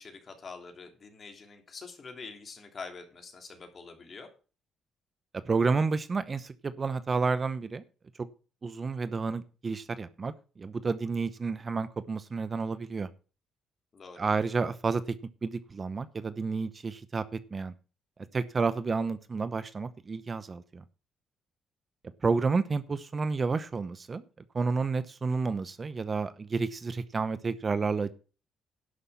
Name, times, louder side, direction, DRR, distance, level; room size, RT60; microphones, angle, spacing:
voice 1, 0.0-4.3 13.9-14.2, left 4 dB, 40° left, 4 dB, 3.2 m, -45 dB
voice 2, 5.3-7.8 8.6-13.1 14.2-15.2 15.4-17.7 18.3-20.8 22.2-24.2 24.5-28.1, right 4 dB, 35° right, 14 dB, 0.8 m, -30 dB
11.5 x 6.0 x 7.2 m, 0.35 s
cardioid pair, 90°, 0 cm